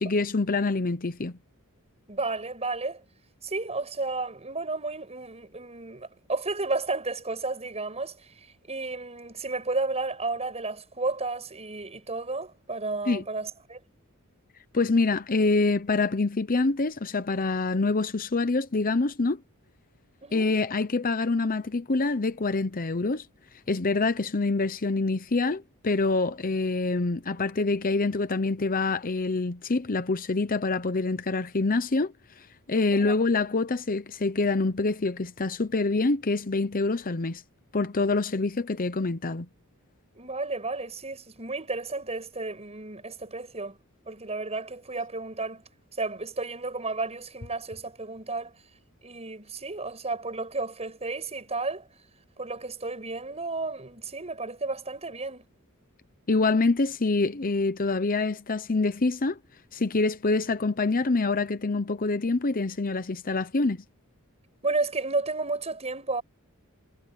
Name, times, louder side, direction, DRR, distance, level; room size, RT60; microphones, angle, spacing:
voice 1, 0.0-1.4 13.1-13.2 14.7-19.4 20.3-23.3 23.7-32.1 32.7-37.4 37.7-39.5 56.3-59.4 59.7-63.8, left 3 dB, 40° left, 0.8 m, -26 dB
voice 2, 2.1-3.0 3.4-8.3 8.7-13.8 20.2-20.5 32.9-33.1 40.2-43.8 44.1-45.6 46.0-48.5 49.0-51.9 52.4-55.5 64.6-66.2, right 3 dB, 30° right, 7.2 m, -32 dB
head